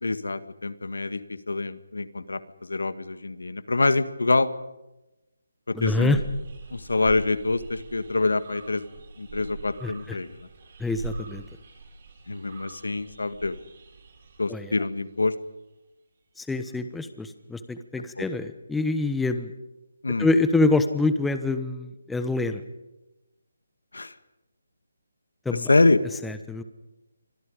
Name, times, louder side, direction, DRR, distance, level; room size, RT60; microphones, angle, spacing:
voice 1, 0.0-1.2 1.5-4.5 5.7-6.2 6.7-8.8 9.2-10.4 12.3-13.6 14.4-15.3 18.2-18.3 20.0-20.3 23.9-24.1 25.5-26.0, left 3 dB, 80° left, 13 dB, 1.8 m, -25 dB
voice 2, 5.7-6.2 9.8-10.2 10.8-11.4 14.5-14.7 16.4-19.5 20.2-22.6 25.4-25.7 26.2-26.6, left 2 dB, 5° left, 10 dB, 1.2 m, -26 dB
sound 1, 5.8-15.1 16.5-16.7, right 4 dB, 45° right, 7.3 m, -43 dB
29.0 x 25.0 x 5.2 m, 0.99 s
figure-of-eight pair, 155°, 0 cm